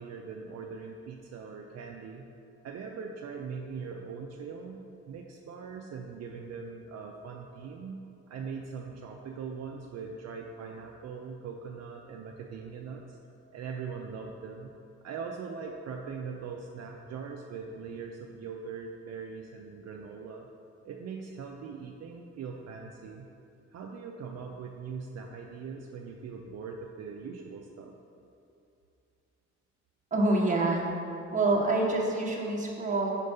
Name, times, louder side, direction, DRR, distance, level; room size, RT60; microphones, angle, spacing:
voice 1, 0.0-2.3 2.6-13.2 13.5-14.7 15.0-20.5 20.8-23.3 23.7-27.9, right 5 dB, 60° right, 1 dB, 0.5 m, -41 dB
voice 2, 30.1-30.9 31.3-33.2, right 2 dB, 25° right, -2 dB, 1.2 m, -26 dB
5.1 x 4.6 x 5.4 m, 2.7 s
cardioid pair, 90°, 30 cm